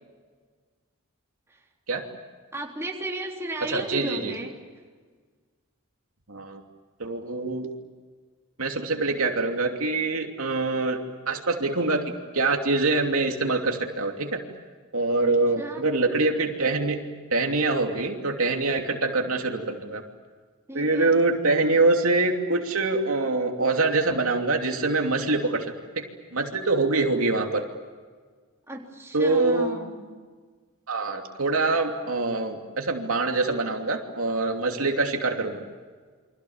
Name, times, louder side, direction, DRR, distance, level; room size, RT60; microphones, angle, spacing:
voice 1, 2.5-4.6 15.2-15.9 20.7-21.1 28.7-30.1, right 1 dB, 10° right, -1 dB, 3.7 m, -35 dB
voice 2, 3.6-4.3 6.3-6.6 7.0-7.7 8.6-12.0 12.3-14.4 14.9-17.0 17.3-20.0 20.7-26.0 26.3-27.6 29.1-29.8 30.9-35.6, right 3 dB, 75° right, 2 dB, 2.9 m, -24 dB
29.5 x 25.0 x 7.3 m, 1.5 s
head